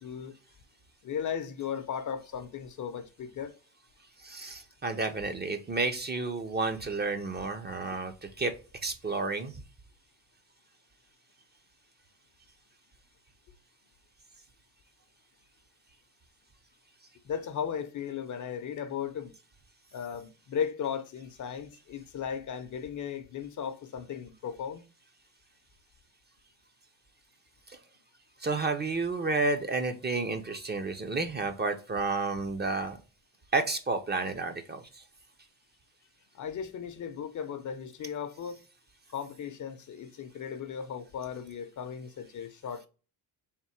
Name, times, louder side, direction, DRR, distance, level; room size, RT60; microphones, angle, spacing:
voice 1, 0.0-0.3 1.0-3.5 17.2-19.3 19.9-24.8 36.3-38.6 39.1-42.9, left 7 dB, 50° left, 0.6 m, -36 dB
voice 2, 4.2-8.5 8.8-9.5 27.7-27.8 28.4-33.0 33.5-35.0, right 3 dB, 25° right, 0.6 m, -31 dB
3.6 x 2.5 x 4.2 m
cardioid pair, 90°, 40 cm